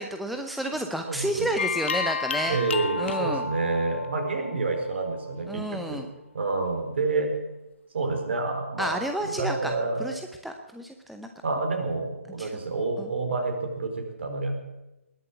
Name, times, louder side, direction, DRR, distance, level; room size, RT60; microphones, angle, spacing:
voice 1, 0.0-2.6 3.0-3.4 5.5-6.1 8.8-11.3 12.4-12.5 13.0-13.1, right 1 dB, ahead, 4 dB, 0.7 m, -31 dB
voice 2, 1.1-1.5 2.5-6.0 6.3-7.3 7.9-8.9 9.2-10.0 11.4-14.6, right 3 dB, 50° right, 4 dB, 4.2 m, -28 dB
sound 1, 1.6-5.1, left 5 dB, 55° left, 1.0 m, -31 dB
20.0 x 7.5 x 8.4 m, 0.95 s
figure-of-eight pair, 140°, 8 cm